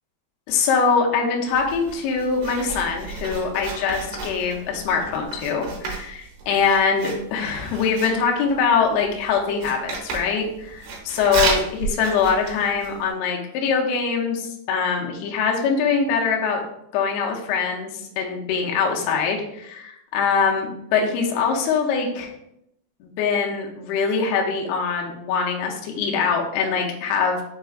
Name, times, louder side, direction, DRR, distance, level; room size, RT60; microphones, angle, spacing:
voice 1, 0.5-16.6 16.9-22.3 23.0-27.4, left 5 dB, 80° left, 0 dB, 2.3 m, -23 dB
Writing, 1.5-13.1, right 4 dB, 80° right, 1.9 m, -32 dB
6.7 x 3.3 x 2.4 m, 0.79 s
omnidirectional pair, 5.3 m